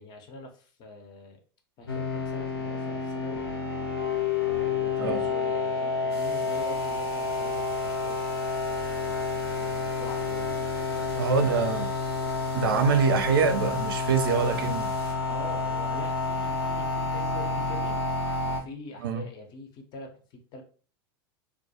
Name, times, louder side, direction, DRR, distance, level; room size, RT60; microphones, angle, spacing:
voice 1, 0.0-1.4 1.8-3.4 4.6-8.2 9.3-11.9 15.3-18.0 18.5-20.6, left 3 dB, 35° left, 0.5 m, -44 dB
sound 1, 1.9-18.6, left 4 dB, 90° left, 0.6 m, -29 dB
sound 2, 6.1-15.1, right 2 dB, 85° right, 0.8 m, -46 dB
voice 2, 11.2-11.9 12.5-14.9 19.0-19.2, right 5 dB, 65° right, 0.4 m, -24 dB
2.1 x 2.1 x 2.7 m
figure-of-eight pair, 90°, 13 cm